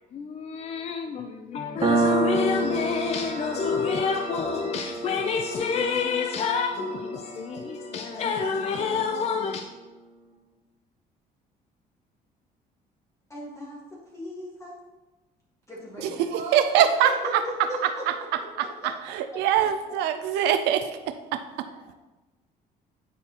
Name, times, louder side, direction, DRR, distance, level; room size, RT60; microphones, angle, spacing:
voice 1, 0.0-9.6, left 5 dB, 40° left, 0.4 m, -28 dB
Piano, 1.8-9.0, right 3 dB, 30° right, 0.8 m, -30 dB
voice 2, 4.7-5.2 15.7-17.2 21.6-21.9, right 4 dB, 65° right, 1.9 m, -41 dB
voice 3, 13.3-13.8 14.1-14.7 15.7-16.3 17.0-18.0 18.6-18.9, left 1 dB, 15° left, 1.6 m, -37 dB
voice 4, 16.0-21.4, right 9 dB, 85° right, 0.4 m, -24 dB
8.8 x 4.1 x 2.9 m
cardioid pair, 110°, 17 cm